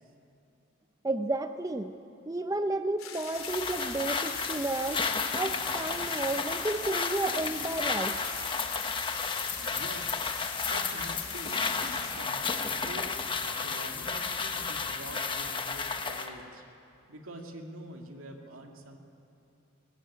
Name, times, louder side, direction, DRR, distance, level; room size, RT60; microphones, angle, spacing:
voice 1, 1.0-2.0 2.3-5.0 5.3-8.2, right 2 dB, 15° right, 7 dB, 0.6 m, -32 dB
sound 1, 3.0-12.1, left 7 dB, 75° left, 3.4 m, -44 dB
sound 2, 3.3-16.3, left 5 dB, 25° left, 1.1 m, -32 dB
voice 2, 9.7-10.2 10.6-16.6 17.1-19.0, right 1 dB, 75° right, 2 dB, 2.5 m, -46 dB
22.5 x 19.0 x 8.8 m, 2.6 s
head